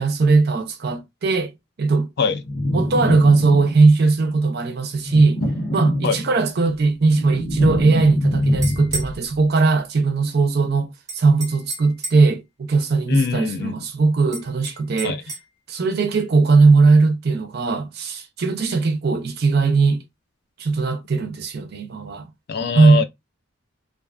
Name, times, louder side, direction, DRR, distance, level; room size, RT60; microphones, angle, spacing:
voice 1, 0.0-1.5 1.8-2.1 2.7-5.4 5.7-15.2 15.7-20.0 20.6-22.3 22.7-23.0, right 3 dB, 50° right, 0.5 m, -18 dB
sound 1, 2.4-4.0 5.0-6.5 6.9-9.2, left 1 dB, 75° left, 1.0 m, -24 dB
sound 2, 8.4-9.2 11.1-12.3 14.3-15.5, right 2 dB, 15° right, 0.7 m, -33 dB
voice 2, 13.1-13.8 15.0-15.2 22.5-23.0, left 5 dB, 55° left, 0.4 m, -22 dB
2.4 x 2.3 x 2.3 m
head